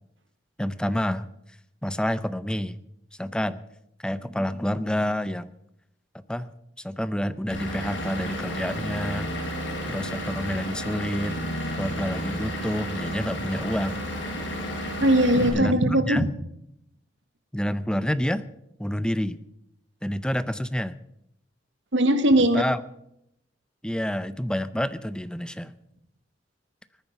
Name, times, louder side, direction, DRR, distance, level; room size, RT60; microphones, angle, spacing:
voice 1, 0.6-1.3 1.8-2.8 3.2-3.6 4.0-5.5 6.1-6.5 6.8-9.3 9.9-11.4 11.8-14.0 15.5-16.3 17.5-18.5 18.8-19.4 20.0-21.0 22.5-22.8 23.8-25.7, equal, 5° left, 14 dB, 0.6 m, -28 dB
Vehicle / Engine, 7.5-15.5, equal, 80° left, 5.9 m, -32 dB
voice 2, 15.0-16.3 21.9-22.6, right 1 dB, 85° right, 9 dB, 1.6 m, -20 dB
19.5 x 9.6 x 5.9 m, 0.77 s
head